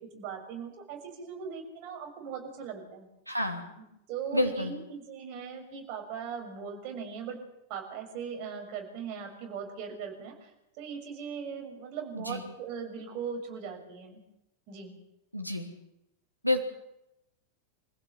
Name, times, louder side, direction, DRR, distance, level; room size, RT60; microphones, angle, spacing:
voice 1, 0.1-7.4 7.7-10.5 10.8-14.2 14.7-14.9, right 6 dB, 40° right, 2 dB, 6.4 m, -39 dB
voice 2, 3.3-3.6 4.3-4.7 12.1-12.4 15.3-15.7 16.4-16.6, left 1 dB, 90° right, 4 dB, 3.2 m, -29 dB
26.0 x 16.0 x 7.6 m, 0.87 s
figure-of-eight pair, 90°, 0 cm